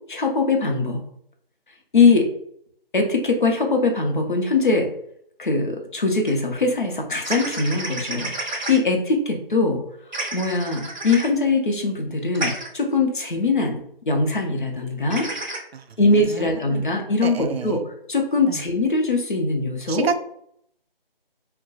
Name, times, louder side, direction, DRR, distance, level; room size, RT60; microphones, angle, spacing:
voice 1, 0.1-1.0 1.9-2.3 2.9-4.9 5.4-9.8 10.3-13.8 14.1-15.3 16.0-20.1, left 3 dB, 55° left, 2 dB, 0.6 m, -21 dB
Ducktoy Quackers, 6.3-6.4 7.2-8.8 10.1-11.3 12.3-12.7 15.1-15.6, right 2 dB, 50° right, 0.7 m, -30 dB
voice 2, 16.3-16.9 17.2-17.8 18.5-18.6 19.9-20.2, right 5 dB, 90° right, 10 dB, 0.5 m, -28 dB
2.4 x 2.1 x 3.9 m, 0.69 s
figure-of-eight pair, 175°, 30 cm